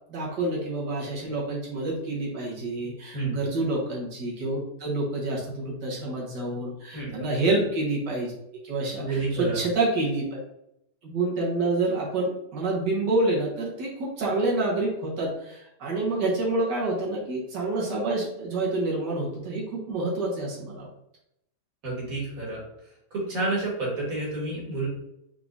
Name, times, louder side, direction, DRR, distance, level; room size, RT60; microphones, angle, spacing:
voice 1, 0.1-8.3 8.6-10.3 11.0-20.9, right 2 dB, 85° right, -4 dB, 2.0 m, -28 dB
voice 2, 9.0-9.6 21.8-22.6 23.1-24.9, right 2 dB, 55° right, -4 dB, 2.0 m, -29 dB
4.7 x 3.7 x 2.6 m, 0.81 s
omnidirectional pair, 1.8 m